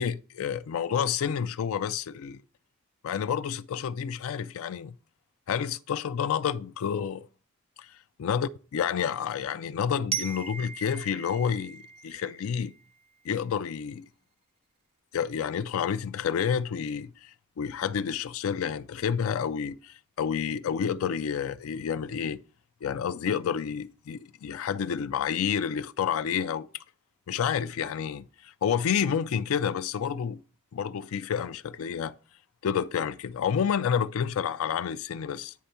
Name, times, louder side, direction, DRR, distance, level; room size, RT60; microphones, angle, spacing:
voice 1, 0.0-2.4 3.0-4.9 5.5-7.3 7.8-12.7 13.2-14.1 15.1-22.4 22.8-26.7 27.3-30.4 30.7-32.1 32.6-35.5, left 7 dB, 70° left, 0.4 m, -29 dB
Glockenspiel, 10.1-13.0, right 8 dB, 25° right, 0.4 m, -38 dB
9.4 x 3.4 x 5.6 m
head